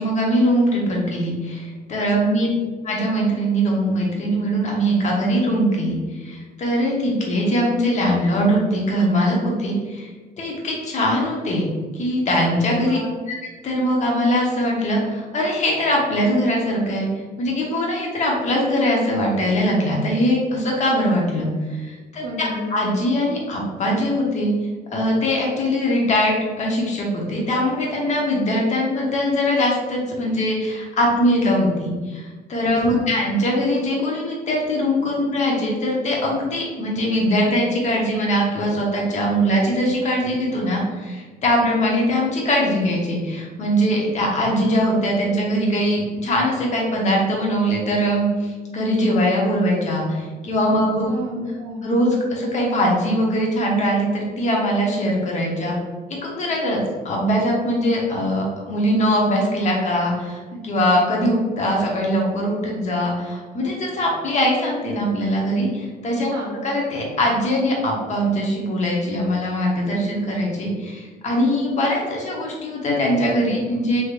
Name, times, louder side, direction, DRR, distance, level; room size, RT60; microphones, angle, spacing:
voice 1, 0.0-2.5 2.8-10.1 10.4-11.6 11.9-13.0 13.3-13.4 13.6-17.1 17.4-24.5 24.9-51.1 51.8-55.7 56.2-56.8 57.0-66.3 66.6-74.0, equal, 45° left, -2 dB, 0.9 m, -21 dB
voice 2, 1.9-2.4 12.6-13.2 22.2-22.8 32.8-33.2 51.0-51.8 66.3-66.6, left 1 dB, 80° right, -1 dB, 0.8 m, -31 dB
3.4 x 2.9 x 2.4 m, 1.4 s
cardioid pair, 110°, 17 cm